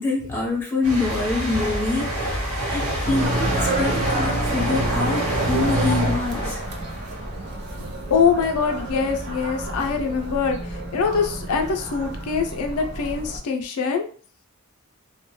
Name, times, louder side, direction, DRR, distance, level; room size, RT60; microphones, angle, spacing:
voice 1, 0.0-2.4 2.6-6.6, left 3 dB, 10° left, -4 dB, 0.7 m, -25 dB
sound 1, 0.8-8.3 8.6-8.9, equal, 90° right, 0.9 m, -28 dB
sound 2, 3.0-13.4, right 1 dB, 50° right, 0.5 m, -28 dB
voice 2, 7.8-14.1, left 5 dB, 90° left, 4 dB, 0.4 m, -24 dB
2.2 x 2.1 x 3.0 m, 0.42 s
head